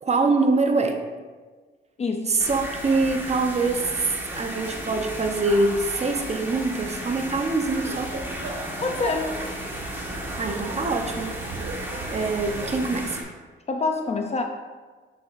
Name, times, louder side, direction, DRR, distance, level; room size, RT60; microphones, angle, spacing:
voice 1, 0.0-1.0 2.3-3.9 4.3-8.1 10.4-11.4 11.8-13.2, right 3 dB, 35° right, 4 dB, 0.9 m, -24 dB
voice 2, 2.0-2.3 8.8-9.4 13.7-14.4, left 3 dB, 35° left, 4 dB, 0.6 m, -26 dB
sound 1, 2.4-13.2, equal, 10° right, 1.5 m, -34 dB
Laughter, 7.6-12.7, right 3 dB, 70° right, 0.9 m, -37 dB
7.6 x 6.8 x 2.6 m, 1.4 s
cardioid pair, 90°, 20 cm